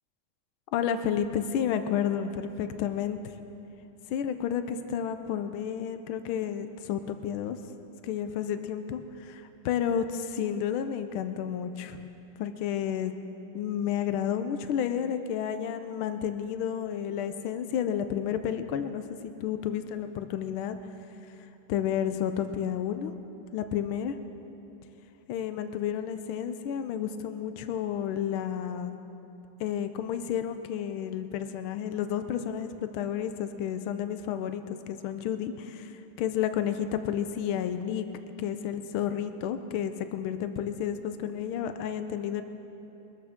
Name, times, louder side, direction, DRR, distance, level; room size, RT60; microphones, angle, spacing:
voice 1, 0.7-3.2 4.1-7.6 8.0-9.0 9.6-10.0 10.3-12.0 12.4-13.1 13.5-20.8 21.2-21.3 21.7-23.1 23.5-24.1 25.3-29.0 29.6-38.1 38.4-42.4, left 9 dB, 85° left, 9 dB, 1.5 m, -31 dB
23.0 x 13.0 x 3.6 m, 2.9 s
omnidirectional pair, 2.3 m